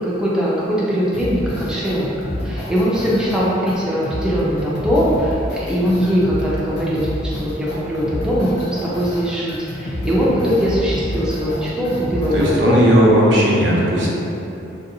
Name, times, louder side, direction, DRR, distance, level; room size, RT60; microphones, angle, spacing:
voice 1, 0.0-2.1 2.4-12.9, equal, 5° right, -8 dB, 0.4 m, -20 dB
sound 1, 1.1-12.6, equal, 60° left, 0.6 m, -28 dB
voice 2, 12.3-14.1, equal, 65° right, -5 dB, 0.6 m, -15 dB
3.2 x 2.6 x 2.6 m, 2.9 s
head